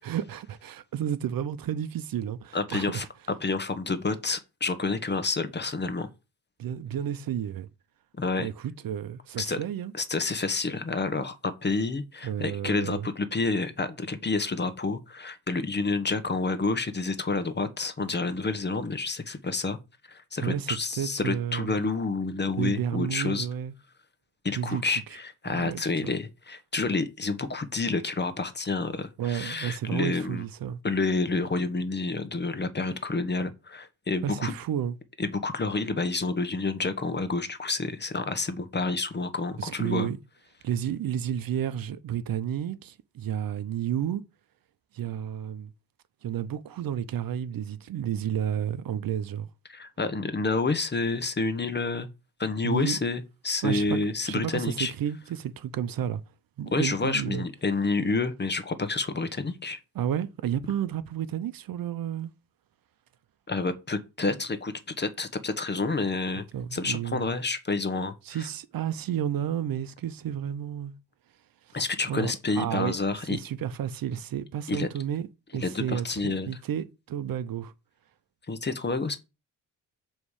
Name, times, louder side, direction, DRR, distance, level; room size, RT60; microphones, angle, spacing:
voice 1, 0.0-3.1 6.6-7.7 8.4-9.9 12.2-13.1 20.4-21.7 22.6-23.7 24.6-24.8 25.5-26.2 29.2-30.8 34.2-35.0 39.6-40.2 40.6-44.2 44.9-45.7 46.2-49.5 52.6-53.0 53.6-54.0 54.2-56.2 56.6-57.5 59.9-62.3 66.5-67.3 68.2-70.9 71.7-71.8 72.1-75.3 75.5-77.7, right 9 dB, 60° right, 0.8 m, -31 dB
voice 2, 2.5-3.0 3.4-6.1 8.2-8.5 9.4-9.6 9.9-19.8 20.1-23.5 24.4-30.4 30.8-34.5 35.2-40.1 49.7-52.1 52.4-54.9 56.7-59.8 63.5-66.5 66.7-68.5 71.7-73.4 74.7-74.9 75.5-76.5 78.5-79.2, left 3 dB, 25° left, 1.1 m, -29 dB
7.0 x 3.2 x 4.9 m
supercardioid pair, 65°, 40 cm